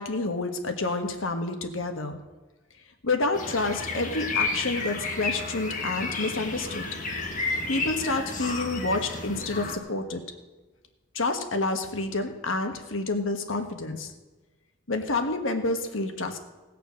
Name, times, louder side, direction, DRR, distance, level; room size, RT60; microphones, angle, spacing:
voice 1, 0.0-2.2 3.0-6.9 7.7-10.2 11.1-14.1 14.9-16.4, left 2 dB, 85° left, 6 dB, 1.5 m, -29 dB
sound 1, 3.3-9.8, left 3 dB, 40° left, 1.7 m, -32 dB
18.0 x 6.7 x 6.3 m, 1.2 s
head